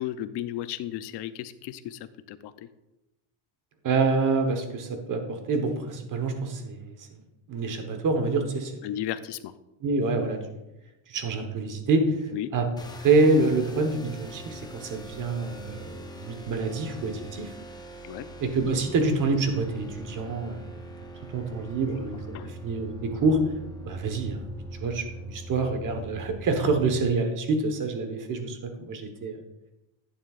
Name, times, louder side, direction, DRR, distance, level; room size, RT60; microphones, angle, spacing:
voice 1, 0.0-2.0 2.3-2.5 8.8-9.5 12.3-12.5 18.0-18.3 22.3-22.5, left 12 dB, 60° left, 12 dB, 0.6 m, -34 dB
voice 2, 3.8-6.9 7.5-8.7 9.8-10.4 11.1-12.2 12.5-12.7 13.0-17.5 18.4-20.7 21.3-23.4 23.8-24.5 24.8-29.4, right 3 dB, 40° right, 6 dB, 1.2 m, -26 dB
sound 1, 12.8-27.1, right 1 dB, 10° left, 0.3 m, -43 dB
11.0 x 8.8 x 2.4 m, 0.97 s
cardioid pair, 170°, 47 cm